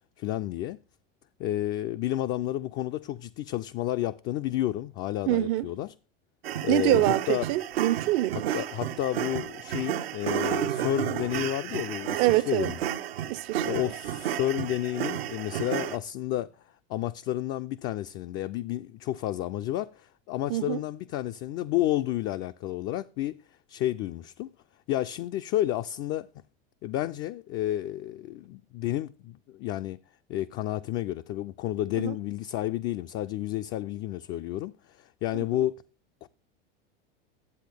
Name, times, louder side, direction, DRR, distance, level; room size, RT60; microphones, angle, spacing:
voice 1, 0.2-0.8 1.4-5.9 6.6-7.5 8.5-12.8 13.7-16.5 16.9-23.3 23.7-24.5 24.9-26.3 26.8-30.0 30.3-35.7 36.2-36.3, left 13 dB, 45° left, 0.4 m, -31 dB
voice 2, 5.3-5.6 6.7-8.5 12.2-12.7 13.3-13.9 20.5-20.8 31.9-32.1 35.3-35.5, right 16 dB, 60° right, 0.6 m, -25 dB
sound 1, 6.4-16.0, right 11 dB, 85° right, 0.8 m, -32 dB
10.5 x 7.5 x 3.4 m
hypercardioid pair, 95°, 30 cm